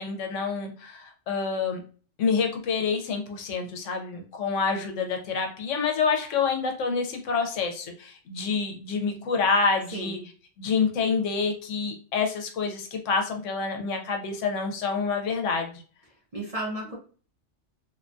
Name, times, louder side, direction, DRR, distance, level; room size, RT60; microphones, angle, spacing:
voice 1, 0.0-1.8 2.2-10.2 10.6-15.8, left 5 dB, 85° left, 4 dB, 1.0 m, -27 dB
voice 2, 9.9-10.2 16.3-16.9, right 1 dB, 40° right, -4 dB, 0.6 m, -33 dB
2.6 x 2.2 x 2.5 m, 0.39 s
omnidirectional pair, 1.2 m